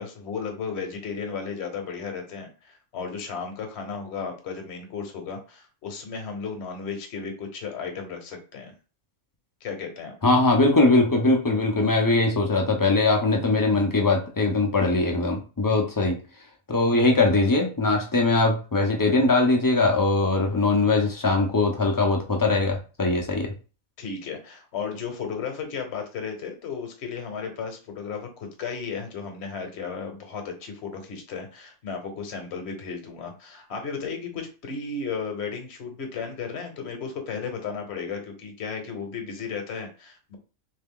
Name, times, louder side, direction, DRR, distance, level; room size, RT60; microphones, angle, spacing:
voice 1, 0.0-8.7 9.6-10.1 24.0-40.4, left 5 dB, 55° left, 5 dB, 1.1 m, -34 dB
voice 2, 10.2-16.2 16.7-23.5, left 2 dB, 30° left, 1 dB, 0.4 m, -21 dB
3.3 x 2.8 x 3.6 m, 0.34 s
omnidirectional pair, 1.5 m